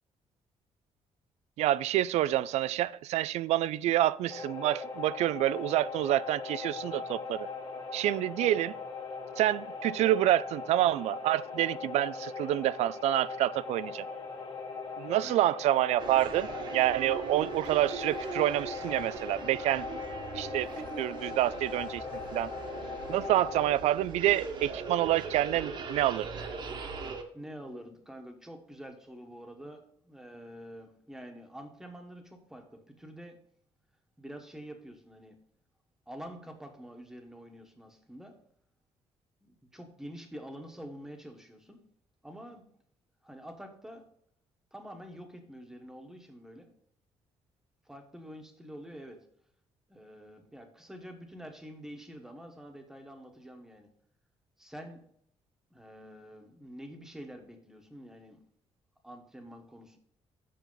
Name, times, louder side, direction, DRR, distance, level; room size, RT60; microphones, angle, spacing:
voice 1, 1.6-7.5 7.9-8.8 9.4-14.0 15.0-20.0 20.3-20.7 21.0-22.0 22.3-22.5 23.1-26.3, right 13 dB, 85° right, 19 dB, 0.4 m, -28 dB
sound 1, 4.3-23.7, left 4 dB, 40° left, 1.9 m, -40 dB
sound 2, 16.0-27.2, right 5 dB, 45° right, 1.1 m, -40 dB
voice 2, 27.3-33.4 34.2-35.4 36.1-38.4 39.4-41.8 42.2-42.7 43.2-44.1 44.7-46.7 47.8-49.3 49.9-53.9 54.6-55.1 55.7-58.4 59.0-60.0, equal, 5° right, 4 dB, 1.1 m, -47 dB
7.6 x 6.6 x 3.9 m, 0.68 s
cardioid pair, 175°, 11 cm